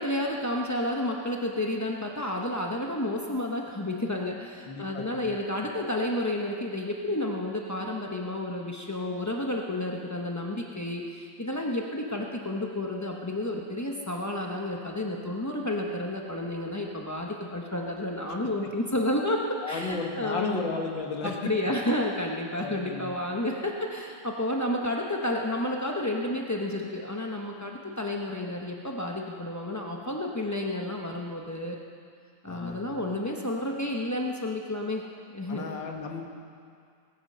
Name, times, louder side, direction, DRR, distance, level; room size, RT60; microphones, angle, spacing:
voice 1, 0.0-20.6 21.2-31.8 32.4-35.0 35.3-35.7, left 1 dB, 25° left, 0 dB, 0.3 m, -31 dB
voice 2, 4.7-5.3 19.6-21.5 22.6-23.1 32.5-33.0 35.5-36.2, left 4 dB, 80° left, 2 dB, 2.2 m, -34 dB
21.5 x 9.4 x 6.7 m, 2.3 s
omnidirectional pair, 2.0 m